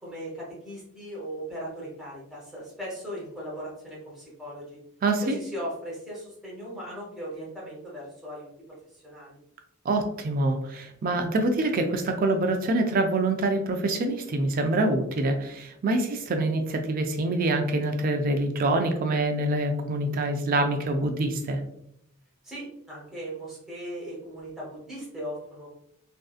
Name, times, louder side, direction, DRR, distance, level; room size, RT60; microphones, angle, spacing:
voice 1, 0.0-4.8 5.2-9.4 22.4-25.7, equal, ahead, -7 dB, 0.8 m, -38 dB
voice 2, 5.0-5.4 9.8-21.6, right 2 dB, 40° right, 5 dB, 0.3 m, -25 dB
2.6 x 2.3 x 2.4 m, 0.75 s
head